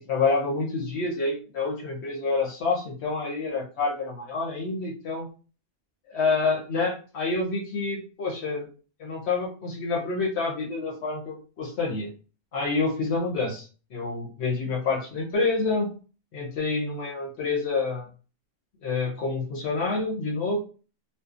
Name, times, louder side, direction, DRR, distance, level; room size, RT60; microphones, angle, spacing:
voice 1, 0.1-5.3 6.1-8.7 9.0-12.1 12.5-15.9 16.3-18.1 18.8-20.6, left 3 dB, 90° left, -2 dB, 1.0 m, -28 dB
2.7 x 2.0 x 2.4 m, 0.36 s
omnidirectional pair, 1.1 m